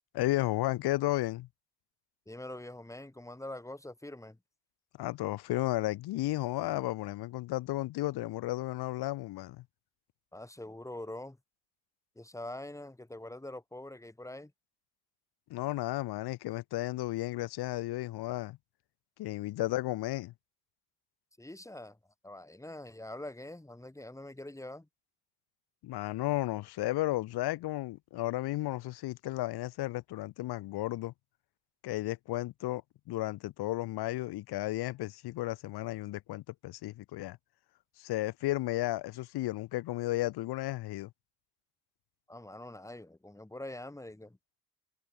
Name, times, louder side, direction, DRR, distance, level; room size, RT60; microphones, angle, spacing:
voice 1, 0.1-1.5 5.0-9.6 15.5-18.6 19.2-20.3 25.8-31.1 31.8-32.8 33.1-37.4 38.0-41.1, left 17 dB, 70° left, 2.3 m, -33 dB
voice 2, 2.3-4.4 10.3-11.4 12.2-14.5 21.4-22.0 22.2-24.9 42.3-44.4, left 1 dB, 10° left, 4.3 m, -44 dB
supercardioid pair, 85°, 40 cm